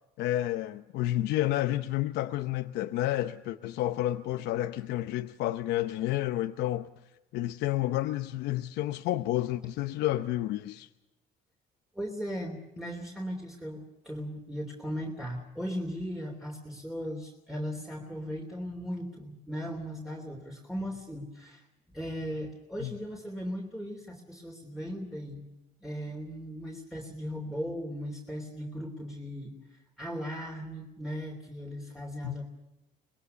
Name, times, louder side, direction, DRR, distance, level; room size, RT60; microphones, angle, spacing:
voice 1, 0.2-6.9 7.3-10.9 22.8-22.9 32.2-32.5, left 14 dB, 85° left, 0.8 m, -30 dB
voice 2, 11.9-21.7 21.9-25.5 25.8-32.5, equal, ahead, 3.2 m, -37 dB
25.5 x 21.0 x 6.9 m
cardioid pair, 110°, 17 cm